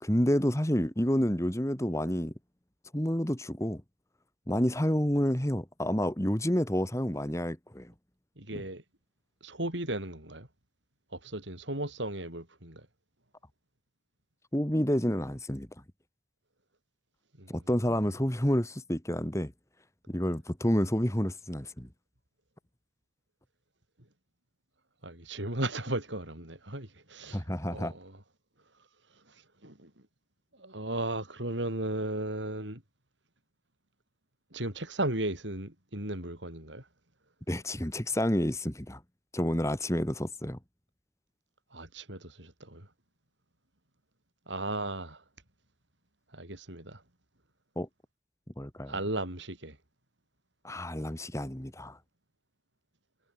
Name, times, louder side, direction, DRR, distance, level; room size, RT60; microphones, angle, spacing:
voice 1, 0.0-2.3 2.9-3.8 4.5-7.9 8.5-8.6 14.5-15.7 17.5-19.5 20.1-21.9 27.3-27.9 37.5-39.0 39.3-40.6 47.8-47.9 48.6-48.9 50.6-52.0, equal, 15° left, 2.0 m, -29 dB
voice 2, 8.4-8.8 9.4-10.5 11.1-12.9 17.4-17.5 25.0-27.4 27.7-28.1 29.3-29.9 30.6-32.8 34.5-36.9 41.7-42.9 44.5-45.2 46.3-47.0 48.9-49.8, right 1 dB, 75° right, 6.9 m, -35 dB
head